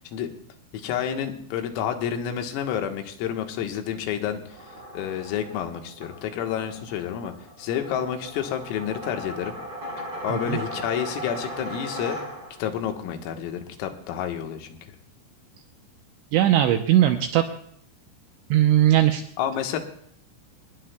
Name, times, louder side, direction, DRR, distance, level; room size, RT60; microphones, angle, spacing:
voice 1, 0.7-4.4 4.9-9.6 10.2-12.2 12.6-14.8 19.4-19.8, left 9 dB, 85° left, 4 dB, 4.0 m, -29 dB
sound 1, 4.4-12.7, equal, 25° right, 5.3 m, -37 dB
voice 2, 16.3-17.4 18.5-19.2, right 12 dB, 80° right, 5 dB, 2.7 m, -19 dB
28.0 x 20.0 x 2.3 m, 0.66 s
omnidirectional pair, 5.9 m